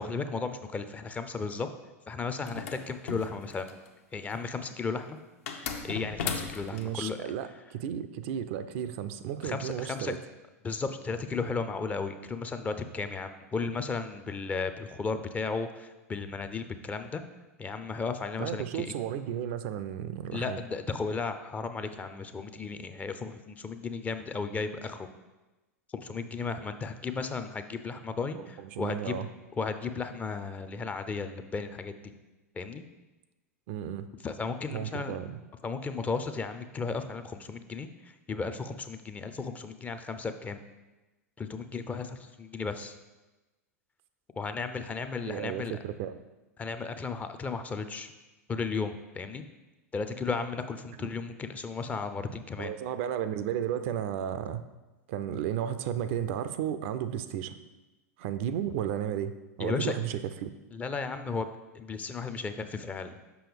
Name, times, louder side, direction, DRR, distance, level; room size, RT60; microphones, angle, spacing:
voice 1, 0.0-1.7 2.1-3.8 4.1-5.2 5.8-7.2 9.4-10.1 10.6-17.2 17.6-18.9 20.3-25.1 25.9-29.2 29.6-32.1 32.5-32.8 34.2-35.2 35.6-40.6 41.4-43.0 44.4-45.8 46.6-48.1 48.5-49.5 49.9-52.7 59.6-59.9 60.7-61.5 61.7-63.2, left 4 dB, 20° left, 9 dB, 0.5 m, -34 dB
sound 1, 2.5-3.9 5.5-6.9, left 5 dB, 65° left, 0.8 m, -36 dB
voice 2, 6.7-10.2 18.4-20.6 28.6-29.3 33.7-34.1 34.7-35.4 45.3-46.2 52.6-54.6 55.1-57.6 58.2-59.3 59.6-60.5, right 10 dB, 55° right, 12 dB, 0.4 m, -33 dB
6.8 x 5.6 x 3.5 m, 1.1 s
figure-of-eight pair, 90°, 8 cm